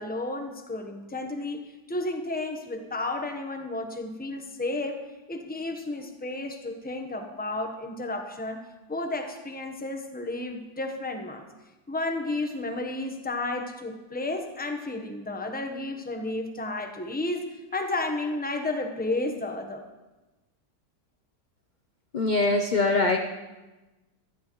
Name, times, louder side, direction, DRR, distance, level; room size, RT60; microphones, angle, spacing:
voice 1, 0.0-5.0 5.3-8.6 8.9-11.4 11.9-17.5 17.7-19.8, left 2 dB, 10° left, 4 dB, 0.7 m, -32 dB
voice 2, 22.1-23.2, left 3 dB, 50° left, 3 dB, 0.5 m, -23 dB
16.5 x 13.0 x 3.1 m, 1.1 s
omnidirectional pair, 1.8 m